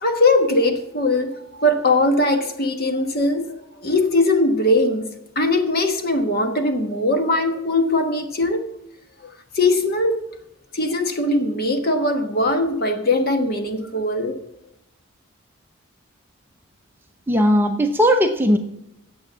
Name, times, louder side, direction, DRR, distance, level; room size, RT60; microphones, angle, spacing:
voice 1, 0.0-5.1 5.3-8.6 9.2-10.2 10.7-14.4, left 2 dB, 45° left, 1.3 m, -20 dB
voice 2, 17.3-18.6, equal, 10° right, 0.6 m, -17 dB
9.4 x 7.7 x 7.3 m
head